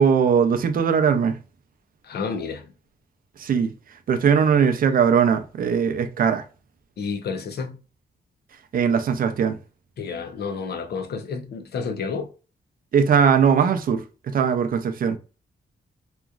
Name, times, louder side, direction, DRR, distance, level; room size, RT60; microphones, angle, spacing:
voice 1, 0.0-1.4 3.4-3.7 4.1-6.4 8.7-9.6 12.9-15.2, right 6 dB, 55° right, 0.4 m, -20 dB
voice 2, 2.0-2.7 7.0-7.8 10.0-12.3, left 5 dB, 70° left, 0.5 m, -30 dB
2.9 x 2.4 x 2.3 m
wide cardioid pair, 170°, 17 cm